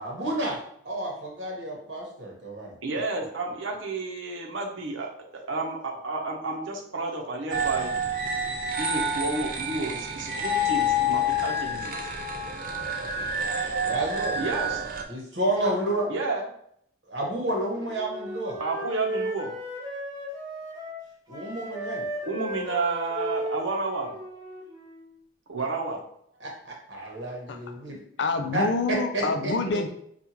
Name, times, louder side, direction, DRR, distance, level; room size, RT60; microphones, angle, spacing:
voice 1, 0.0-2.7 13.8-14.4 15.1-16.1 17.1-18.6 21.3-22.0 26.4-28.0 28.5-29.5, right 1 dB, 60° right, -1 dB, 1.3 m, -30 dB
voice 2, 2.8-8.0 8.8-12.1 14.4-14.8 16.1-16.5 18.6-19.5 22.3-24.1 25.5-26.0, right 3 dB, 80° right, 0 dB, 0.8 m, -31 dB
sound 1, 7.5-15.0, left 1 dB, 45° right, 0.5 m, -28 dB
Wind instrument woodwind instrument, 17.5-21.0 21.3-25.2, equal, 20° right, 0.8 m, -35 dB
voice 3, 28.2-29.9, left 3 dB, 65° left, 6 dB, 0.5 m, -26 dB
5.3 x 2.4 x 2.9 m, 0.69 s
head